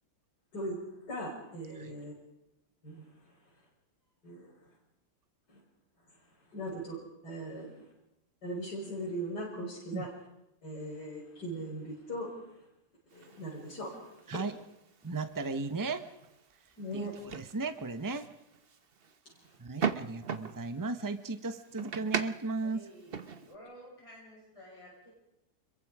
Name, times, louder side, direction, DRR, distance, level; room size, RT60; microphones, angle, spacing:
voice 1, 1.1-2.1 2.8-3.1 4.2-4.5 5.5-5.6 6.5-7.0 7.2-7.9 8.4-10.1 10.6-12.3 13.1-13.9 14.2-14.4 16.8-17.1 19.2-19.3, right 1 dB, 70° left, -5 dB, 6.4 m, -39 dB
sound 1, 13.1-23.6, right 6 dB, 40° right, 1.1 m, -41 dB
voice 2, 15.0-16.1 16.9-18.3 19.6-22.9, right 3 dB, 15° right, 9 dB, 1.1 m, -35 dB
voice 3, 22.6-25.1, equal, 15° left, -4 dB, 8.0 m, -52 dB
26.5 x 23.0 x 5.0 m, 0.87 s
omnidirectional pair, 1.8 m